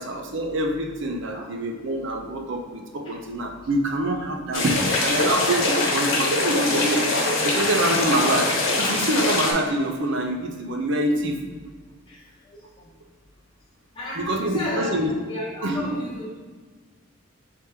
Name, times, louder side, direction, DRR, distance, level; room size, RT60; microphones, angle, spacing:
voice 1, 0.0-7.1 7.4-11.4 14.1-15.1 15.6-16.0, right 1 dB, 60° right, 3 dB, 0.6 m, -25 dB
sound 1, 4.5-9.5, left 2 dB, 75° left, 1.1 m, -23 dB
voice 2, 12.1-12.9 13.9-16.3, left 1 dB, 25° left, -8 dB, 0.7 m, -34 dB
4.5 x 3.5 x 3.1 m, 1.5 s
head